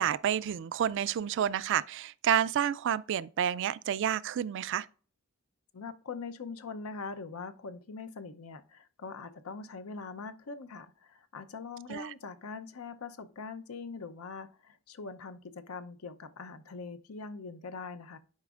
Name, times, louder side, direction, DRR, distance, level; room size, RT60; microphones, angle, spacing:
voice 1, 0.0-4.9 11.9-12.1, right 9 dB, 60° right, 0.3 m, -29 dB
voice 2, 5.7-18.2, left 4 dB, 75° left, 0.7 m, -42 dB
10.5 x 5.0 x 2.4 m
head